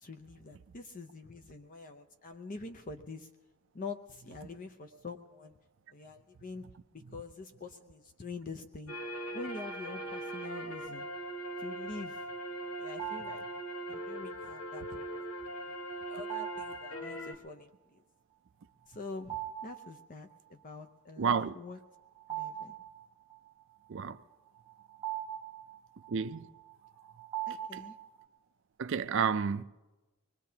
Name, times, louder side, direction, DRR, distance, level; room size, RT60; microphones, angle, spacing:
voice 1, 0.0-3.3 3.7-5.6 5.9-6.7 6.9-9.0 9.3-11.1 11.6-12.3 12.8-13.4 13.9-15.3 15.6-15.8 16.1-18.0 18.9-21.8 22.3-22.8 27.5-28.0, left 3 dB, 35° left, 0.6 m, -45 dB
sound 1, 8.9-17.3, right 1 dB, 90° left, 1.4 m, -40 dB
sound 2, 13.0-13.6 16.3-16.9 19.2-19.9 20.3-20.4 21.8-23.4 24.3-28.2, right 12 dB, 25° right, 1.2 m, -41 dB
voice 2, 21.2-21.5 23.9-24.2 26.1-26.5 27.7-27.8 28.8-29.6, right 6 dB, 55° right, 0.4 m, -30 dB
25.0 x 20.5 x 2.8 m
head